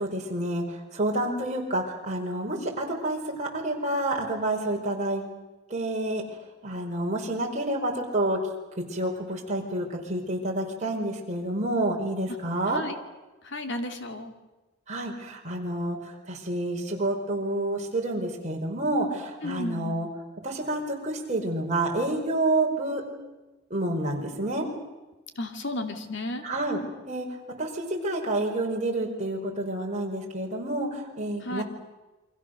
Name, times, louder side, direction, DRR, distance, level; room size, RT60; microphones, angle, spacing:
voice 1, 0.0-5.2 5.7-6.2 6.6-8.4 8.9-12.8 14.9-20.1 20.4-23.0 23.7-24.6 26.4-26.8 27.1-27.3 27.6-31.6, right 1 dB, 35° right, 0 dB, 4.8 m, -29 dB
voice 2, 13.4-14.4 19.4-20.0 25.4-26.4 31.4-31.6, left 1 dB, 55° left, 5 dB, 2.5 m, -33 dB
29.0 x 24.5 x 6.6 m, 1.1 s
head